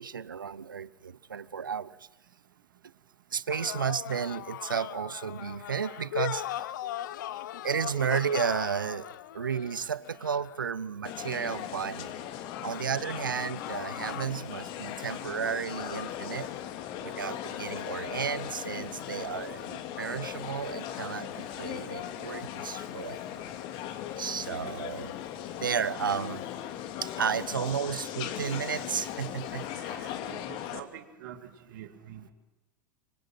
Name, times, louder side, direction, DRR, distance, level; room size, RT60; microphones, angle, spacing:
voice 1, 0.0-2.0 3.3-6.8 7.6-12.1 12.6-16.5 17.0-23.2 24.2-25.1 25.6-26.5 27.0-30.2, right 7 dB, 90° right, 19 dB, 0.8 m, -33 dB
sound 1, 3.5-10.8 12.4-14.3, left 13 dB, 70° left, 0.9 m, -39 dB
sound 2, 11.0-30.8, left 11 dB, 50° left, 2.5 m, -38 dB
voice 2, 27.5-28.0 29.9-31.4 31.7-32.3, right 11 dB, 65° right, 6 dB, 2.4 m, -46 dB
26.0 x 25.0 x 5.9 m, 1.0 s
hypercardioid pair, 90°, 11 cm